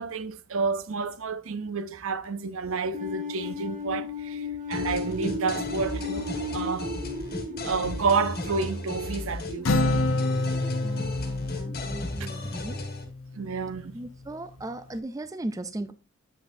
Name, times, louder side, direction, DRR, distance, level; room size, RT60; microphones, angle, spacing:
voice 1, 0.0-6.3 6.5-6.9 7.6-9.7 12.2-12.3 13.4-14.0, right 4 dB, 75° right, 0.6 m, -30 dB
sound 1, 2.9-9.8, left 3 dB, 40° right, 1.4 m, -35 dB
sound 2, 4.7-13.0, left 1 dB, 45° left, 1.6 m, -35 dB
Acoustic guitar, 9.6-13.3, left 2 dB, 75° left, 0.8 m, -28 dB
voice 2, 10.8-12.8 13.9-15.9, right 2 dB, 15° right, 0.3 m, -37 dB
7.9 x 6.3 x 2.6 m
head